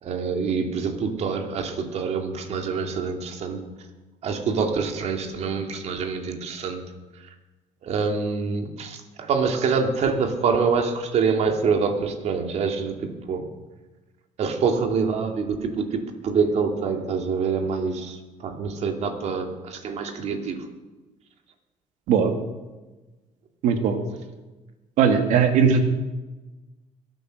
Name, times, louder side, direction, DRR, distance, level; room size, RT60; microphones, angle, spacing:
voice 1, 0.0-3.6 4.2-6.8 7.8-13.5 14.4-20.6, right 5 dB, 60° right, 4 dB, 2.4 m, -26 dB
voice 2, 23.6-24.0 25.0-25.8, right 6 dB, 85° right, 6 dB, 2.0 m, -19 dB
23.0 x 9.0 x 6.4 m, 1.2 s
cardioid pair, 125°, 13 cm